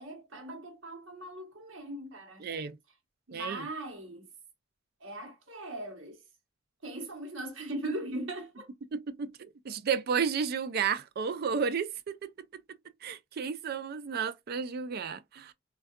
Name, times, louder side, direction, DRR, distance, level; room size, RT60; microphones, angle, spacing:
voice 1, 0.0-2.4 3.3-4.3 5.0-6.2 6.8-8.7, right 1 dB, 75° right, 0.9 m, -39 dB
voice 2, 2.4-2.8 3.3-3.7 8.9-12.3 13.0-15.5, right 6 dB, 50° right, 0.4 m, -32 dB
3.6 x 2.3 x 2.2 m
head